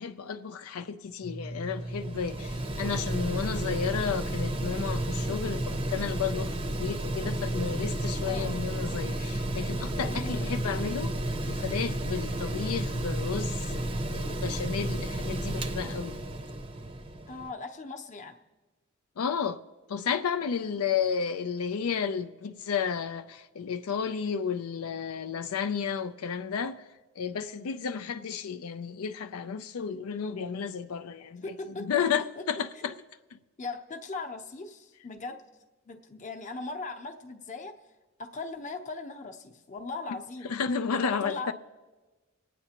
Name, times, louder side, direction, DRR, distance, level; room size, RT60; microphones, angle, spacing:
voice 1, 0.0-11.1 11.5-13.8 14.1-16.2 19.2-19.6 19.9-26.8 27.2-32.9 33.3-33.4 40.4-41.5, left 6 dB, 90° left, 0.4 m, -32 dB
Mechanical fan, 1.2-17.5, right 1 dB, 25° right, 0.6 m, -32 dB
voice 2, 8.2-8.6 10.0-10.5 17.3-18.4 20.6-20.9 31.4-32.4 32.8-32.9 33.6-35.4 35.9-37.7 38.2-40.5 41.0-41.5, left 3 dB, 35° left, 0.8 m, -39 dB
26.0 x 9.2 x 2.9 m
head